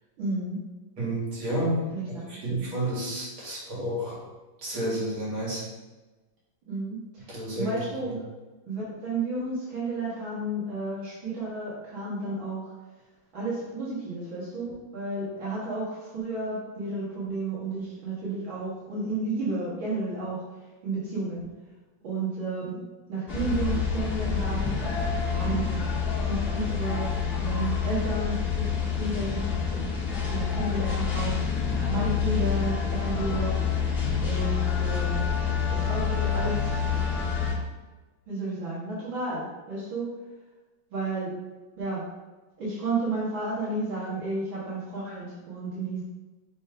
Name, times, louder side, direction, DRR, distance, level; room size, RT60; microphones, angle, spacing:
voice 1, 0.2-0.6 1.9-2.0 2.6-2.7 6.7-8.1 8.7-12.7 13.3-20.4 20.8-21.4 22.0-22.8 23.1-25.8 26.2-27.1 27.4-30.0 30.3-33.6 34.2-35.3 35.7-36.7 38.3-40.1 40.9-41.3 41.8-42.0 42.6-46.0, right 2 dB, 75° right, -8 dB, 2.3 m, -32 dB
voice 2, 1.0-1.8 2.3-4.2 4.6-5.6 7.3-7.8 8.0-8.1, right 1 dB, 90° right, -6 dB, 2.9 m, -30 dB
sound 1, 23.3-37.5, left 6 dB, 30° left, 1.5 m, -27 dB
5.3 x 5.2 x 3.4 m, 1.2 s
omnidirectional pair, 2.2 m